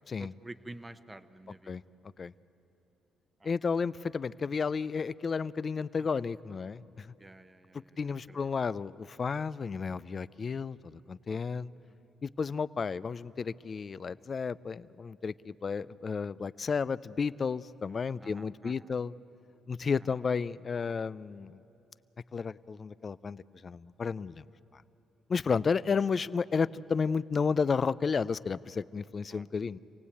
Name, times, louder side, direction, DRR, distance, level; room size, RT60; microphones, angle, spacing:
voice 1, 0.2-1.7 3.4-3.5 6.0-6.1 7.2-8.5 11.3-11.4 11.9-12.0 18.2-18.9 20.0-20.2 29.3-29.4, right 2 dB, 20° right, 11 dB, 0.9 m, -50 dB
voice 2, 3.4-7.1 8.0-11.7 12.2-19.1 19.7-21.6 22.3-24.4 25.3-29.8, left 5 dB, 40° left, 18 dB, 0.4 m, -32 dB
27.0 x 18.0 x 8.5 m, 3.0 s
cardioid pair, 90°, 0 cm